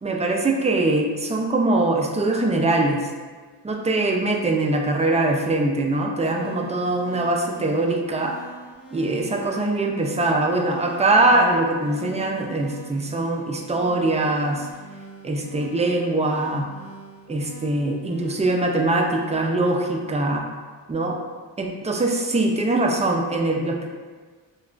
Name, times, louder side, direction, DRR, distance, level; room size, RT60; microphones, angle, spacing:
voice 1, 0.0-3.1 3.6-8.3 8.9-14.7 15.2-16.7 17.3-20.5 20.9-21.2 21.6-23.9, right 2 dB, 15° right, 1 dB, 0.3 m, -22 dB
sound 1, 6.2-19.3, right 1 dB, 60° left, 1.0 m, -43 dB
3.6 x 2.2 x 2.4 m, 1.4 s
cardioid pair, 55°, 46 cm